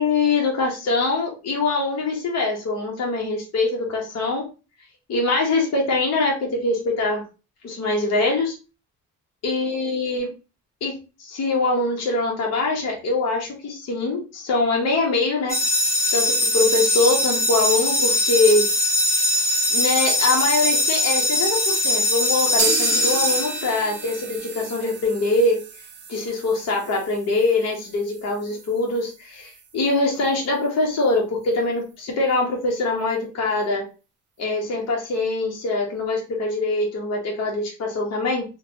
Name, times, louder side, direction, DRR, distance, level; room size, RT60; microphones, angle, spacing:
voice 1, 0.0-4.4 5.1-7.2 7.6-8.5 9.4-10.3 10.8-15.6 16.1-18.7 19.7-25.6 26.1-33.8 34.4-38.4, left 3 dB, 60° left, -2 dB, 1.0 m, -23 dB
sound 1, 15.5-24.2, left 1 dB, 10° left, 0.8 m, -21 dB
sound 2, 22.6-30.3 30.6-30.7 31.0-31.1 31.5-31.6, right 6 dB, 40° right, 0.6 m, -33 dB
2.8 x 2.2 x 2.8 m, 0.32 s
cardioid pair, 90°, 30 cm